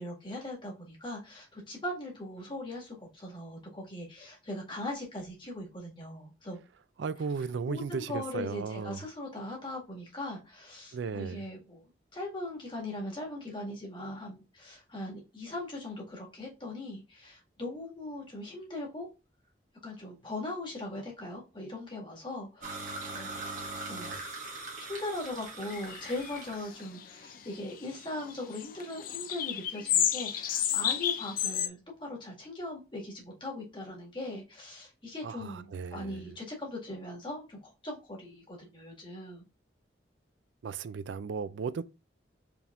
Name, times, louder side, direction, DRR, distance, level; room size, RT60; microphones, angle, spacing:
voice 1, 0.0-6.6 7.7-11.8 12.1-19.1 19.8-23.5 23.8-24.2 24.8-39.4, left 1 dB, 25° left, 1.8 m, -40 dB
voice 2, 7.0-9.0 10.9-11.4 35.2-36.3 40.6-41.8, right 5 dB, 80° right, 0.4 m, -35 dB
sound 1, 22.6-26.8, right 2 dB, 45° right, 1.5 m, -41 dB
sound 2, 25.7-27.8 28.0-31.7, left 10 dB, 50° left, 0.4 m, -31 dB
4.9 x 3.4 x 2.4 m
head